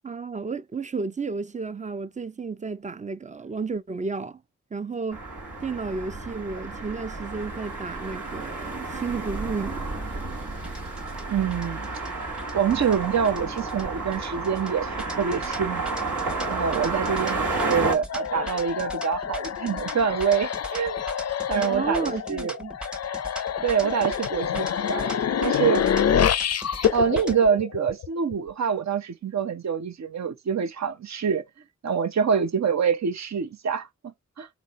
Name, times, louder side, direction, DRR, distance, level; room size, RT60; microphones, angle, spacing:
voice 1, 0.0-4.4 4.7-5.2 5.6-9.9 21.5-22.7, right 4 dB, 25° right, 0.4 m, -32 dB
sound 1, 5.1-18.0, right 3 dB, 80° right, 1.4 m, -31 dB
sound 2, 10.6-27.3, equal, 5° right, 0.7 m, -40 dB
voice 2, 11.3-11.9 12.5-16.0 16.5-21.0 21.5-22.6 23.6-25.8 26.9-31.4 31.8-34.5, right 7 dB, 65° right, 0.7 m, -26 dB
sound 3, 18.1-28.3, left 8 dB, 55° left, 0.4 m, -27 dB
4.1 x 4.0 x 3.0 m
cardioid pair, 50°, 30 cm